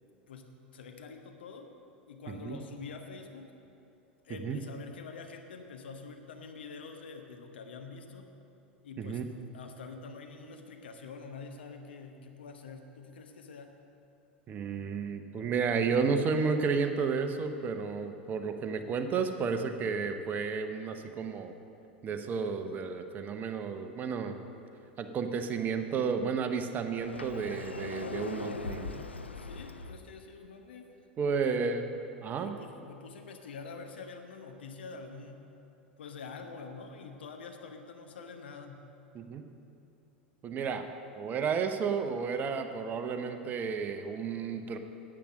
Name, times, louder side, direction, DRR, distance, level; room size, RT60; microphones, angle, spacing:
voice 1, 0.3-1.7 2.1-3.5 4.2-8.3 8.8-9.3 9.5-13.8 29.3-30.9 31.3-31.6 32.4-35.4 36.0-38.9, left 4 dB, 70° left, 5 dB, 1.0 m, -46 dB
voice 2, 2.3-2.6 4.4-4.6 9.0-9.2 14.5-21.5 22.0-24.4 25.0-29.0 31.2-31.8 32.2-32.5 39.1-39.5 40.4-40.9 41.2-44.8, right 5 dB, 30° right, 7 dB, 0.9 m, -32 dB
Sliding door, 27.0-30.0, left 3 dB, 85° left, 0.5 m, -40 dB
10.5 x 8.8 x 6.3 m, 2.8 s
figure-of-eight pair, 85°, 6 cm